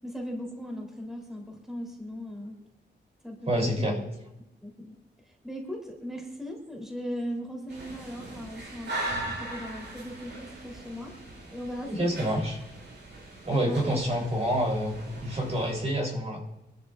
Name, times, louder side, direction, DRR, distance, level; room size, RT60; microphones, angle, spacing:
voice 1, 0.0-2.5 3.2-4.0 4.6-4.9 5.3-11.1 11.5-12.3 13.6-13.8, equal, ahead, 0 dB, 3.3 m, -38 dB
voice 2, 3.5-3.9 11.9-12.6 13.4-16.4, equal, 35° right, 0 dB, 3.4 m, -27 dB
sound 1, 7.7-15.7, right 2 dB, 75° right, 6.5 m, -40 dB
25.0 x 13.0 x 2.5 m, 0.90 s
wide cardioid pair, 165°, 19 cm